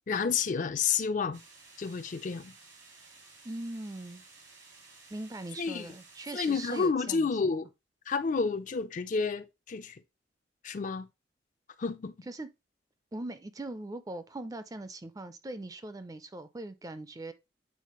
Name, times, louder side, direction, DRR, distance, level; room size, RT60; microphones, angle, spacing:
voice 1, 0.1-1.4 1.8-2.5 5.6-5.9 6.3-7.7 8.1-10.0 10.6-11.1 11.8-12.1, left 5 dB, 40° left, 0.4 m, -30 dB
sound 1, 1.3-6.9, right 3 dB, 90° right, 3.0 m, -55 dB
voice 2, 3.4-4.2 5.1-7.3 12.3-12.5 13.1-17.3, right 2 dB, 20° right, 0.4 m, -40 dB
8.4 x 3.9 x 3.0 m
head